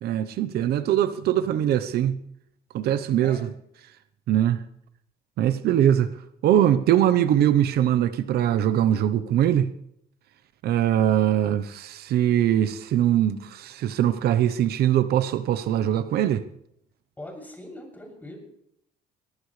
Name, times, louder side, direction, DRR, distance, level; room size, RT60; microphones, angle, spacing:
voice 1, 0.0-2.2 2.7-3.5 4.3-4.6 5.4-6.1 6.4-9.7 10.6-16.4, right 11 dB, 70° right, 12 dB, 0.9 m, -22 dB
voice 2, 17.2-18.4, left 1 dB, 10° left, 0 dB, 7.3 m, -41 dB
22.5 x 18.5 x 3.3 m, 0.74 s
cardioid pair, 110°, 17 cm